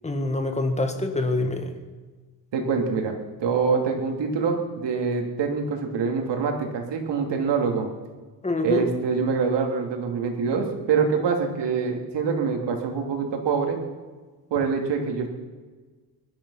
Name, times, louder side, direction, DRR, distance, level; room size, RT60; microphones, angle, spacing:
voice 1, 0.0-1.7 8.4-8.9, left 2 dB, 15° left, 6 dB, 1.7 m, -25 dB
voice 2, 2.5-3.1 3.4-7.9 8.6-13.8 14.5-15.3, right 5 dB, 80° right, 3 dB, 3.0 m, -25 dB
20.0 x 12.5 x 5.7 m, 1.3 s
wide cardioid pair, 155°, 42 cm